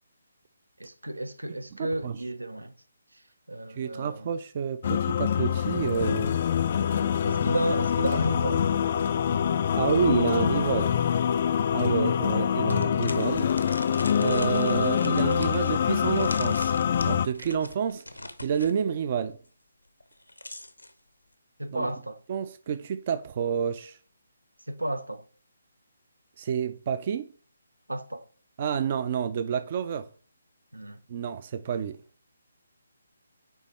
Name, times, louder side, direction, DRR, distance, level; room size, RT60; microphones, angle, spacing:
voice 1, 0.8-2.7 3.5-4.3 7.2-8.7 21.6-22.2 24.7-25.2 27.9-28.2 30.7-31.0, right 1 dB, 85° right, 0.7 m, -32 dB
voice 2, 1.8-2.2 3.8-6.3 9.7-10.9 11.7-13.5 14.2-16.7 17.0-18.0 18.4-19.4 21.7-21.9 22.3-24.0 26.4-27.3 28.6-30.1 31.1-32.0, right 7 dB, 35° right, 0.4 m, -29 dB
sound 1, 4.8-17.3, left 8 dB, 40° left, 0.4 m, -25 dB
sound 2, 12.7-18.8 20.0-20.9, left 1 dB, 85° left, 0.9 m, -41 dB
9.1 x 3.4 x 4.3 m
figure-of-eight pair, 140°, 0 cm